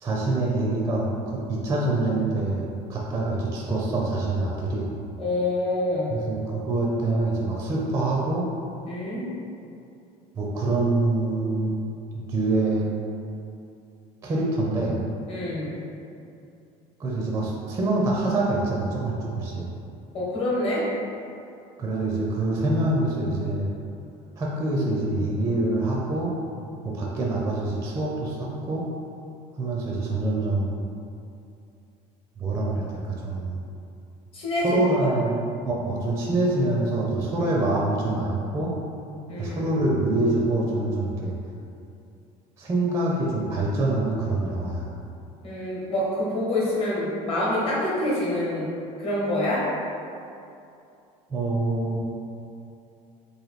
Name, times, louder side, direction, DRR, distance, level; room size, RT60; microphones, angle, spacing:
voice 1, 0.0-4.9 6.1-8.5 10.4-11.7 12.1-12.9 14.2-15.0 17.0-19.7 21.8-23.7 24.4-26.3 26.8-28.8 29.5-30.7 32.4-32.9 33.2-33.6 34.6-35.3 35.6-38.7 39.4-41.3 42.6-44.9 51.3-52.0, right 2 dB, 20° right, -3 dB, 0.4 m, -25 dB
voice 2, 5.2-6.2 8.9-9.3 15.3-15.8 20.1-20.8 34.3-34.8 37.4-37.5 39.3-39.7 45.4-48.7 49.0-49.6, left 1 dB, 35° left, -7 dB, 1.1 m, -26 dB
3.2 x 2.6 x 4.0 m, 2.6 s
cardioid pair, 150°, 16 cm